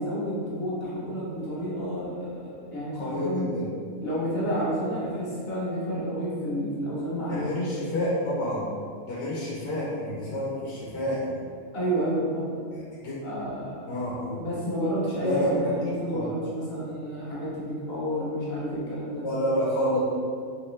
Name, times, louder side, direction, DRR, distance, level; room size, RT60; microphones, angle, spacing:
voice 1, 0.0-3.5 4.0-7.5 11.7-12.6 13.2-13.9 14.4-19.3, equal, 45° left, -8 dB, 1.1 m, -30 dB
voice 2, 2.9-3.7 7.3-8.7 9.1-11.5 12.7-13.2 13.9-14.4 15.2-15.8 16.1-16.3 19.1-20.0, equal, 80° left, -7 dB, 1.2 m, -29 dB
3.1 x 3.1 x 3.1 m, 2.2 s
omnidirectional pair, 1.6 m